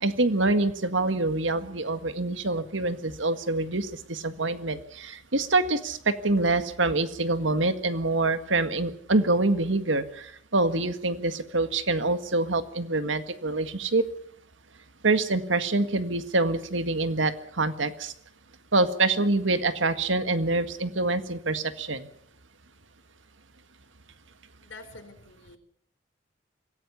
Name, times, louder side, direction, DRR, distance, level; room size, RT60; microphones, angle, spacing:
voice 1, 0.0-14.0 15.0-18.1 18.7-22.1, right 2 dB, 85° right, 10 dB, 1.8 m, -26 dB
voice 2, 24.6-25.6, left 2 dB, 85° left, 8 dB, 4.1 m, -46 dB
25.0 x 17.0 x 7.0 m, 0.63 s
head